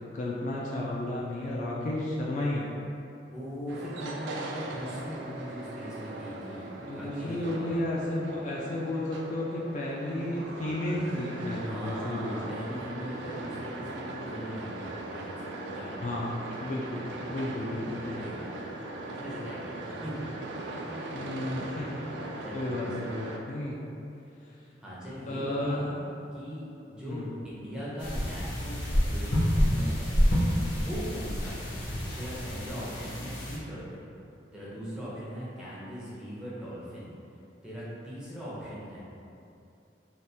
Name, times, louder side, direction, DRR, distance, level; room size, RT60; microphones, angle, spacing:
voice 1, 0.0-2.8 6.8-12.4 16.0-16.3 16.6-18.4 21.1-22.1 22.5-23.8 25.3-26.0 27.1-27.3, left 1 dB, 45° left, -4 dB, 0.3 m, -33 dB
voice 2, 3.3-7.8 11.6-16.3 17.5-20.3 20.7-21.3 22.1-23.2 24.8-25.9 26.3-28.8 29.1-30.2 30.6-31.7 32.2-34.1 34.5-37.1 37.6-39.0, equal, 5° right, -9 dB, 0.7 m, -40 dB
sound 1, 3.7-23.4, right 2 dB, 75° right, 0.3 m, -40 dB
sound 2, 28.0-33.6, equal, 80° left, 0.9 m, -28 dB
3.4 x 2.4 x 2.7 m, 2.7 s
head